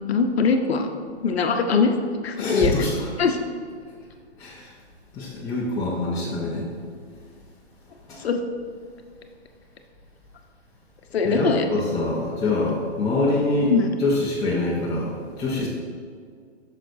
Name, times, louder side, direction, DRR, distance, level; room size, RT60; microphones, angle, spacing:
voice 1, 0.1-0.9 1.2-1.9 2.2-2.7 3.2-3.4 8.2-8.4 11.1-11.7 13.7-13.9, left 5 dB, 65° left, 5 dB, 0.8 m, -21 dB
voice 2, 2.4-3.1 4.4-4.7 5.1-6.7 8.1-8.2 11.2-13.7 14.0-15.7, left 2 dB, 10° left, -8 dB, 0.7 m, -25 dB
8.9 x 6.6 x 2.6 m, 2.1 s
figure-of-eight pair, 125°, 34 cm